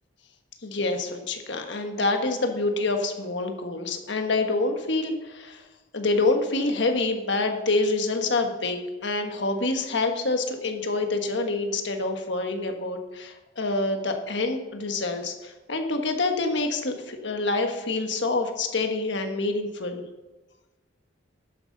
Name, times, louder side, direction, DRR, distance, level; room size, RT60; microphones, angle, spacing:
voice 1, 0.6-5.6 5.9-20.0, left 3 dB, 65° left, 5 dB, 1.3 m, -27 dB
12.0 x 9.2 x 3.9 m, 1.2 s
head